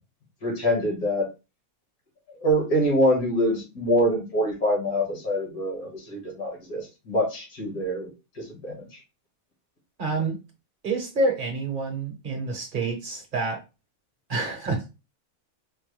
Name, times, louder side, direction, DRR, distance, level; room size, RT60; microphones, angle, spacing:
voice 1, 0.4-1.3 2.4-8.1 8.4-9.0, equal, 80° left, -1 dB, 2.1 m, -25 dB
voice 2, 10.0-10.4 10.8-13.6 14.3-14.9, right 3 dB, 40° right, 2 dB, 0.9 m, -27 dB
4.5 x 2.2 x 3.1 m, 0.27 s
omnidirectional pair, 1.5 m